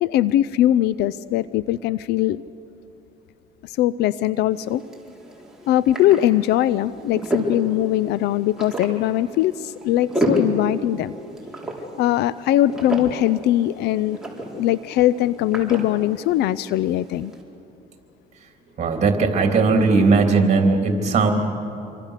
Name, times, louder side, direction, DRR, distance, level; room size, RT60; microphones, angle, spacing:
voice 1, 0.0-2.4 3.6-4.8 5.7-11.1 12.0-14.2 14.5-17.3, left 13 dB, 80° left, 17 dB, 0.5 m, -21 dB
sound 1, 4.5-17.4, right 1 dB, 5° right, 4.4 m, -31 dB
voice 2, 18.8-21.3, right 4 dB, 40° right, 3 dB, 3.3 m, -18 dB
26.5 x 24.0 x 6.6 m, 2.8 s
cardioid pair, 110°, 17 cm